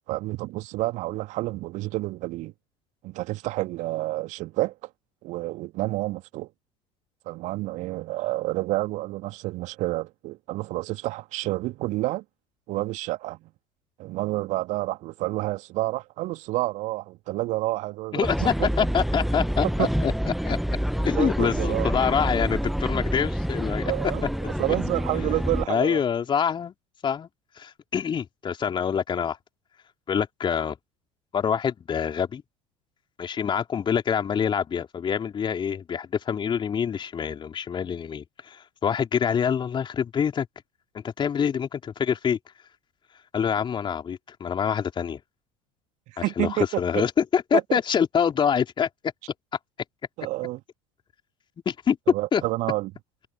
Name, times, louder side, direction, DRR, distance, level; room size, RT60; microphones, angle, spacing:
voice 1, 0.1-2.5 3.0-4.7 5.2-6.5 7.3-12.2 12.7-13.5 14.0-18.7 19.6-19.9 21.2-21.9 23.8-26.0 46.1-47.0 47.5-47.8 50.2-50.6 52.1-52.9, right 18 dB, 50° right, 2.5 m, -29 dB
voice 2, 18.1-20.1 20.4-20.6 21.0-23.8 24.4-24.8 25.1-25.2 25.7-26.7 27.0-27.3 27.6-29.4 30.1-30.8 31.3-32.4 33.2-40.5 41.0-42.4 43.3-45.2 46.2-48.9 51.7-52.0 52.3-52.4, left 7 dB, 30° left, 4.1 m, -26 dB
sound 1, 18.2-25.7, equal, ahead, 1.3 m, -27 dB
figure-of-eight pair, 65°, 16 cm